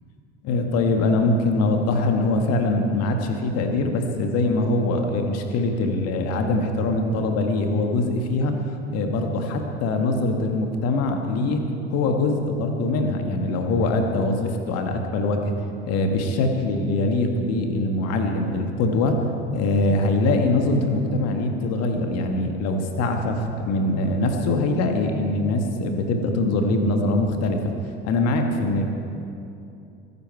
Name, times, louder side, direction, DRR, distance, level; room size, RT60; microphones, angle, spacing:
voice 1, 0.4-8.5 8.9-11.6 11.9-15.5 15.8-19.3 19.5-27.7 28.0-28.8, left 2 dB, 50° left, 4 dB, 1.8 m, -23 dB
22.0 x 10.0 x 4.7 m, 2.7 s
figure-of-eight pair, 65°, 33 cm